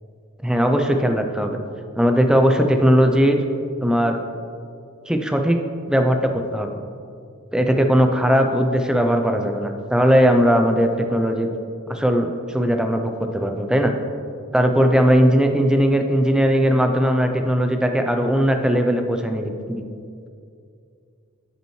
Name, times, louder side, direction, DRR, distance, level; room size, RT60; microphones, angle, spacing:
voice 1, 0.4-1.6 2.0-3.4 3.8-4.2 5.1-5.6 5.9-6.2 6.5-6.8 7.5-11.5 11.9-13.9 14.5-19.8, equal, 5° right, 4 dB, 0.4 m, -18 dB
10.5 x 5.5 x 3.1 m, 2.4 s
head